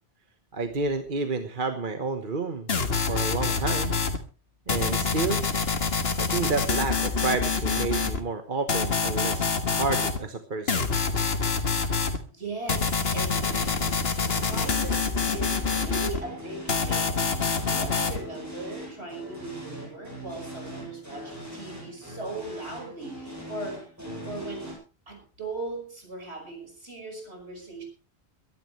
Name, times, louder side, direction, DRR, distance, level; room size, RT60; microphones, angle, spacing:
voice 1, 0.5-2.8 3.1-3.9 4.7-5.4 6.1-10.9 24.1-24.3, right 4 dB, 50° right, 7 dB, 1.4 m, -30 dB
sound 1, 2.7-4.2 4.7-8.2 8.7-10.2 10.7-12.2 12.7-16.2 16.7-18.2, left 4 dB, 65° left, 1.9 m, -26 dB
voice 2, 12.3-13.4 14.4-24.8 25.1-27.8, right 2 dB, 80° right, 3 dB, 5.9 m, -38 dB
sound 2, 13.3-24.7, equal, 15° right, 7.8 m, -41 dB
23.0 x 12.0 x 3.3 m, 0.33 s
omnidirectional pair, 1.1 m